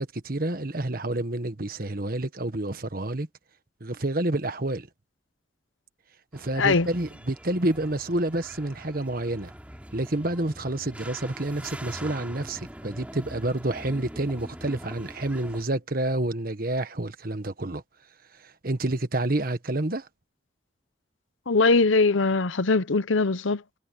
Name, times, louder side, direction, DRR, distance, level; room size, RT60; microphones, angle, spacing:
voice 1, 0.0-3.3 3.8-4.9 6.3-9.5 9.9-17.8 18.4-20.1, right 1 dB, 50° right, 1.4 m, -29 dB
sound 1, 6.3-15.6, equal, 5° right, 2.9 m, -43 dB
voice 2, 21.5-23.8, left 3 dB, 85° left, 0.8 m, -21 dB
head